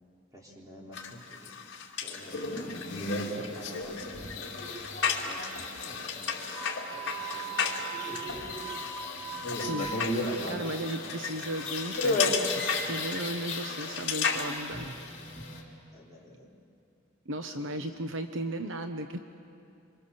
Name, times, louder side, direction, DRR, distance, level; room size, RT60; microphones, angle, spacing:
voice 1, 0.3-1.5 2.0-4.5 5.2-6.5 6.9-8.8 15.9-16.5 17.5-18.2, equal, 15° right, -3 dB, 3.7 m, -50 dB
sound 1, 0.9-14.4, left 6 dB, 60° left, 2.7 m, -35 dB
sound 2, 2.1-15.6, left 2 dB, 35° left, 4.3 m, -36 dB
Wind instrument woodwind instrument, 6.5-10.1, right 7 dB, 15° left, 4.1 m, -40 dB
voice 2, 9.6-9.9 10.5-15.0 17.3-19.2, right 1 dB, 70° right, 7 dB, 1.0 m, -36 dB
27.5 x 25.0 x 7.0 m, 2.5 s
head